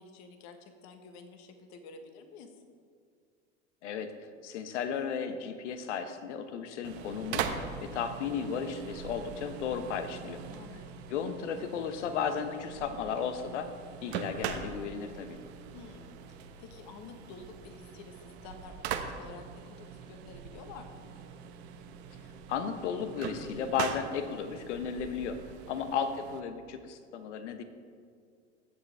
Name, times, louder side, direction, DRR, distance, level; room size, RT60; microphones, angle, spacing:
voice 1, 0.0-2.5 10.5-11.1 15.7-21.0 25.8-25.9, left 4 dB, 50° left, 6 dB, 1.4 m, -50 dB
voice 2, 3.8-4.1 4.4-10.4 11.1-13.7 14.0-15.4 22.5-25.4 25.7-27.6, left 7 dB, 75° left, 9 dB, 1.0 m, -34 dB
sound 1, 6.8-26.4, right 7 dB, 60° right, 1.1 m, -42 dB
18.0 x 7.0 x 3.5 m, 2.2 s
hypercardioid pair, 90°, 36 cm